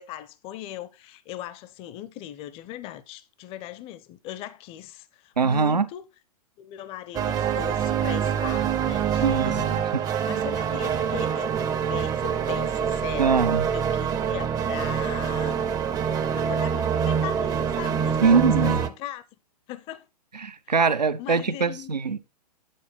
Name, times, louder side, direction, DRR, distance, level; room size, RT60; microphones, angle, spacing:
voice 1, 0.0-6.0 6.6-9.7 10.3-11.5 11.8-13.4 13.7-15.7 16.3-19.2 19.7-20.1 21.2-21.9, left 13 dB, 25° left, 0.6 m, -38 dB
voice 2, 5.4-5.9 9.2-10.0 13.2-13.6 18.2-18.8 20.3-22.2, right 5 dB, 90° right, 0.7 m, -22 dB
sound 1, 7.1-18.9, right 8 dB, 20° right, 0.5 m, -25 dB
9.2 x 4.3 x 4.3 m
figure-of-eight pair, 110°, 21 cm